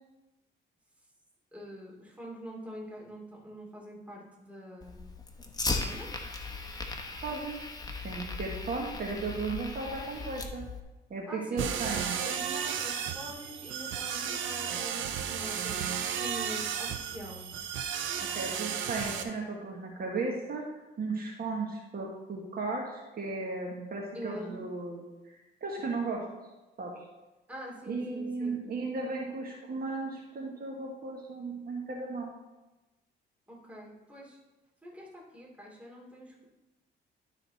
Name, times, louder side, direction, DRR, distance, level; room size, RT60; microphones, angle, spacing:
voice 1, 1.5-5.0 5.6-6.1 11.2-17.5 24.1-24.6 27.5-28.6 33.5-34.4 34.8-36.4, equal, 5° right, -4 dB, 2.9 m, -44 dB
Fire, 4.8-10.8, left 3 dB, 20° left, 1.0 m, -37 dB
voice 2, 7.2-7.6 8.0-10.6 11.1-12.1 18.2-26.2 26.8-26.9 27.9-32.3, right 3 dB, 50° right, -2 dB, 1.5 m, -35 dB
sound 1, 11.6-19.2, right 8 dB, 75° right, 0.8 m, -34 dB
12.0 x 4.1 x 4.1 m, 1.1 s
cardioid pair, 90°, 20 cm